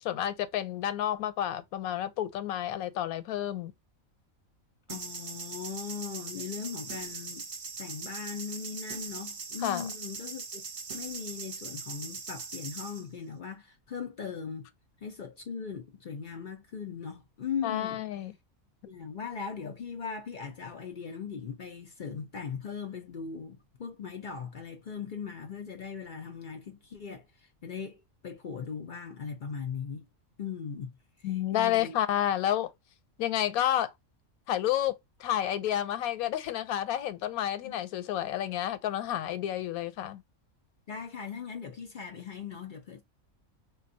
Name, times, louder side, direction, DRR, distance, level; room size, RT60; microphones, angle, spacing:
voice 1, 0.0-3.7 9.6-9.9 17.6-18.3 31.2-32.7 33.2-33.9 34.5-40.2, left 11 dB, 90° left, 1.1 m, -30 dB
voice 2, 4.9-7.4 7.8-10.6 10.9-14.7 15.0-18.0 18.8-27.3 27.6-28.0 28.2-30.0 30.4-30.9 31.2-32.0 37.6-37.9 40.9-43.0, left 6 dB, 60° left, 0.5 m, -39 dB
sound 1, 4.9-13.0, right 4 dB, 50° right, 0.7 m, -41 dB
3.8 x 2.2 x 2.5 m
omnidirectional pair, 1.5 m